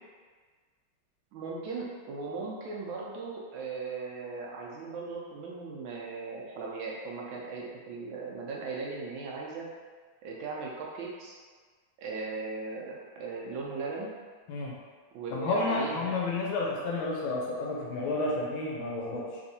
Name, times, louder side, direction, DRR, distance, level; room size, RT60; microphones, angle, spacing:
voice 1, 1.3-9.7 10.2-11.4 12.0-14.1 15.1-16.2, right 4 dB, 75° right, -3 dB, 1.2 m, -38 dB
voice 2, 15.3-19.4, left 3 dB, 75° left, -3 dB, 1.3 m, -31 dB
3.5 x 3.1 x 2.7 m, 1.5 s
omnidirectional pair, 2.4 m